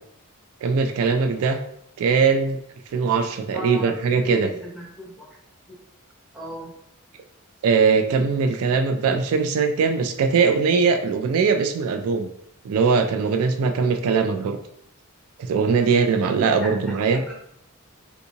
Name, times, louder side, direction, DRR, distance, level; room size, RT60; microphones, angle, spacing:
voice 1, 0.6-1.6 2.0-2.6 2.9-4.5 7.6-12.3 12.6-14.6 15.4-17.2, right 5 dB, 80° right, 7 dB, 0.3 m, -21 dB
voice 2, 3.5-3.9 4.2-5.3 6.3-6.7 16.6-16.7 17.1-17.3, left 1 dB, 5° right, -6 dB, 0.9 m, -35 dB
3.4 x 2.7 x 2.7 m, 0.72 s
head